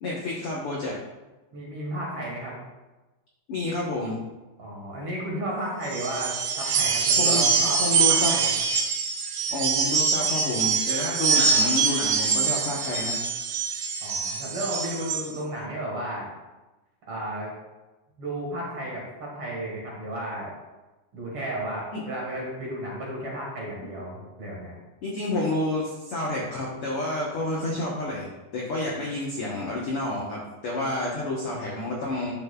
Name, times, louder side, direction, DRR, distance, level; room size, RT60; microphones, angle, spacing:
voice 1, 0.0-0.9 3.5-4.2 7.2-7.5 7.8-8.3 9.5-13.2 21.9-22.0 25.0-32.3, left 2 dB, 80° left, -4 dB, 1.2 m, -29 dB
voice 2, 1.5-2.6 4.6-8.6 14.0-16.3 17.1-17.5 18.2-20.5 21.1-24.8, right 1 dB, 50° right, -4 dB, 1.9 m, -33 dB
sound 1, 5.8-15.3, right 6 dB, 80° right, 2.9 m, -24 dB
11.5 x 5.7 x 2.3 m, 1.1 s
omnidirectional pair, 4.1 m